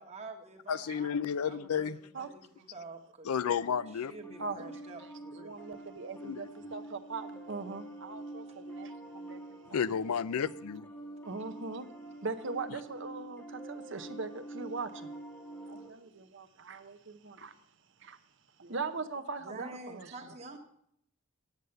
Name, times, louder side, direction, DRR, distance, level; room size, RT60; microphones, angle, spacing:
voice 1, 0.0-1.9 2.2-3.6 4.1-5.5 8.5-8.6 15.6-16.2 19.4-20.6, right 3 dB, 30° right, 1.3 m, -48 dB
voice 2, 0.7-2.0 3.2-4.1 6.2-6.5 9.7-10.9, left 7 dB, 80° left, 0.4 m, -32 dB
Piano, 3.4-15.9, right 2 dB, 10° left, 1.0 m, -47 dB
voice 3, 4.4-4.7 5.3-9.4 9.7-9.8 11.2-11.9 12.2-15.1 15.7-17.5 18.0-18.2 18.6-20.1, right 4 dB, 55° right, 0.7 m, -40 dB
9.4 x 8.2 x 6.6 m
head